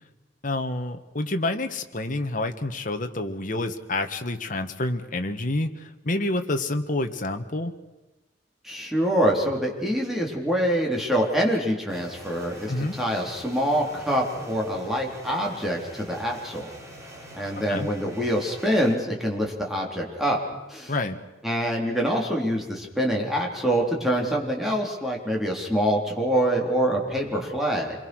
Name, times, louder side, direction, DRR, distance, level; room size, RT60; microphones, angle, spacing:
voice 1, 0.4-7.7 12.7-13.0 17.7-17.9 20.9-21.2, left 2 dB, 50° left, 6 dB, 1.6 m, -28 dB
voice 2, 8.6-16.7 17.3-20.4 20.7-20.9 21.4-27.9, equal, ahead, -1 dB, 4.0 m, -25 dB
sound 1, 11.9-19.0, equal, 20° right, 4.6 m, -44 dB
28.0 x 22.0 x 6.4 m, 1.1 s
head